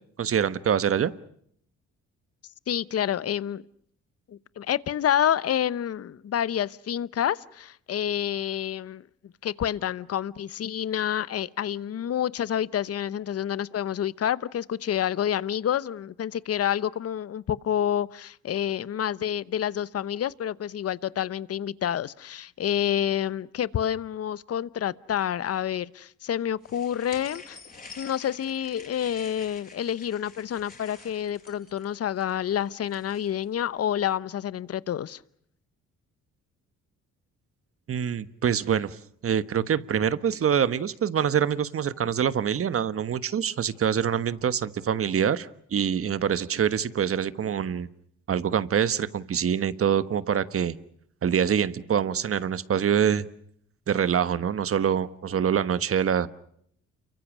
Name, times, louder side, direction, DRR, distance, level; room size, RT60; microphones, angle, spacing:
voice 1, 0.2-1.1 37.9-39.0 39.2-47.9 48.3-50.7 51.2-53.2 53.9-56.3, right 8 dB, 50° right, 1.3 m, -25 dB
voice 2, 2.7-3.6 4.3-9.0 9.4-27.6 28.0-35.2, left 10 dB, 55° left, 0.9 m, -28 dB
sound 1, 26.6-33.5, left 4 dB, 30° left, 5.9 m, -48 dB
29.5 x 23.5 x 6.2 m
cardioid pair, 90°, 30 cm